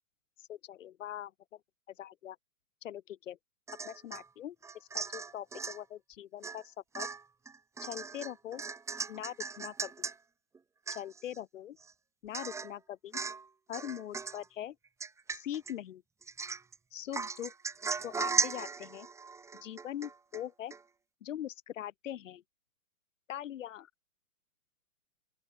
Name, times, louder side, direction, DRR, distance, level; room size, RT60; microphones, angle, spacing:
voice 1, 0.4-1.3 1.9-2.4 2.8-3.4 3.8-7.1 7.8-8.6 9.1-10.1 10.9-11.8 12.2-13.2 13.7-14.8 15.3-16.0 16.9-17.5 18.0-19.1 19.6-20.7 21.2-22.4 23.3-23.9, left 11 dB, 55° left, 3.9 m, -42 dB
Domestic sounds home sounds / Chink clink / Drip, 3.7-4.3 4.6-5.8 6.4-6.6 6.9-10.2 10.5-10.6 10.9-11.4 11.8-11.9 12.3-12.8 13.1-13.5 13.7-14.4 15.0-15.7 16.2-16.8 17.1-20.4 20.7-20.8, right 5 dB, 5° right, 1.4 m, -37 dB
open air
hypercardioid pair, 135°, 46 cm